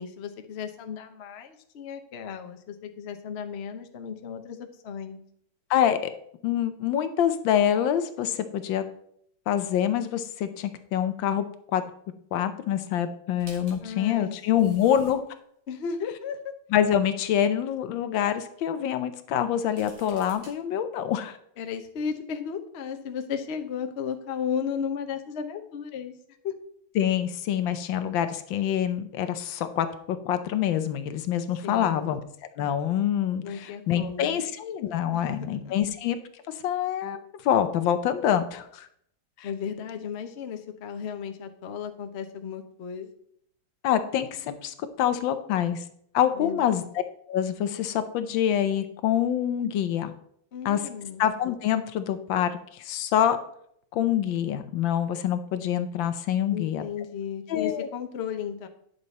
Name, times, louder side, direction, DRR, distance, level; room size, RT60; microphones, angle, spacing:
voice 1, 0.0-5.2 13.8-14.8 15.7-16.4 21.6-26.1 26.4-26.5 31.6-32.2 33.4-34.4 35.1-35.8 39.4-43.1 46.3-46.9 50.5-51.2 56.5-58.7, left 7 dB, 50° left, 5 dB, 0.7 m, -35 dB
voice 2, 5.7-6.1 6.4-8.8 9.5-11.4 11.7-11.8 12.3-15.2 16.7-21.4 26.9-32.2 32.6-36.2 36.5-38.9 39.4-39.5 43.8-45.8 46.1-46.8 47.3-50.1 50.6-50.8 51.2-53.4 53.9-56.8 57.5-57.9, left 10 dB, 80° left, 10 dB, 1.4 m, -26 dB
sound 1, 13.4-15.4 16.1-16.2 19.6-20.5, right 2 dB, 85° right, 3.2 m, -50 dB
9.8 x 6.6 x 4.1 m, 0.69 s
omnidirectional pair, 2.1 m